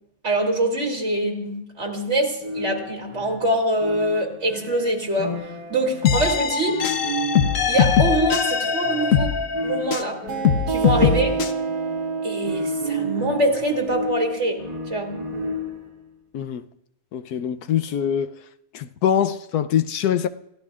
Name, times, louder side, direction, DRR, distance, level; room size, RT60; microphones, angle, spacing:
voice 1, 0.2-5.3 5.7-6.8 7.7-10.2 10.7-11.3 12.2-14.6 14.9-15.2, right 1 dB, 45° right, 3.3 m, -24 dB
sound 1, 2.4-16.0, left 1 dB, 25° right, 2.6 m, -32 dB
sound 2, 6.0-10.1 10.4-11.5, left 7 dB, 60° left, 1.3 m, -21 dB
sound 3, 10.3-15.6, right 5 dB, 75° right, 1.7 m, -30 dB
voice 2, 16.3-16.7 17.1-18.4 18.7-20.3, left 9 dB, 90° left, 1.2 m, -23 dB
28.5 x 15.0 x 2.4 m
omnidirectional pair, 1.6 m